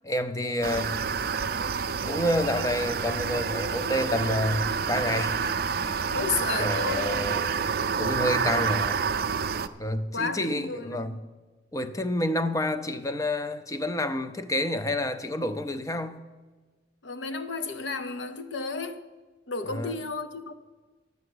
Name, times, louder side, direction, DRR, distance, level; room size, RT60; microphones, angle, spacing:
voice 1, 0.0-0.9 2.0-6.1 6.6-7.5 8.0-9.0 9.8-11.2 11.7-16.3 19.7-19.9, left 1 dB, 15° left, 0.5 m, -29 dB
sound 1, 0.6-9.7, right 6 dB, 50° right, 0.5 m, -28 dB
voice 2, 6.1-7.8 10.1-11.2 17.0-19.0 19.5-20.5, left 4 dB, 70° left, 0.7 m, -33 dB
11.0 x 7.7 x 7.9 m
head